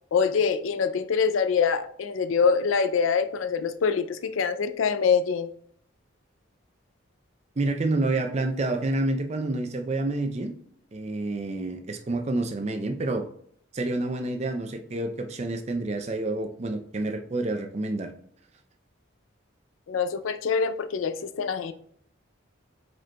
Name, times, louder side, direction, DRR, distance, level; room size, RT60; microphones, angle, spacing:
voice 1, 0.1-5.5 19.9-21.7, left 6 dB, 80° left, 11 dB, 0.4 m, -25 dB
voice 2, 7.6-10.5 10.9-13.3 13.7-18.1, right 2 dB, 35° right, 5 dB, 0.5 m, -28 dB
5.0 x 4.4 x 2.2 m, 0.63 s
head